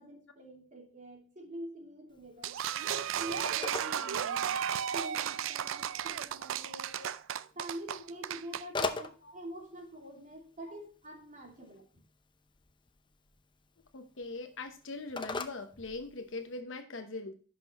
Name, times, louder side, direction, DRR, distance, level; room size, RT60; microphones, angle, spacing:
voice 1, 0.0-2.6 2.9-4.5 4.9-6.9 7.5-11.8, right 1 dB, 40° right, 1 dB, 2.8 m, -46 dB
Telephone, 2.1-16.6, left 3 dB, 25° left, 0.7 m, -44 dB
sound 1, 2.4-8.7, right 9 dB, 90° right, 0.4 m, -34 dB
voice 2, 13.9-17.3, left 3 dB, 70° left, 6 dB, 0.9 m, -41 dB
10.5 x 6.0 x 3.0 m, 0.39 s
head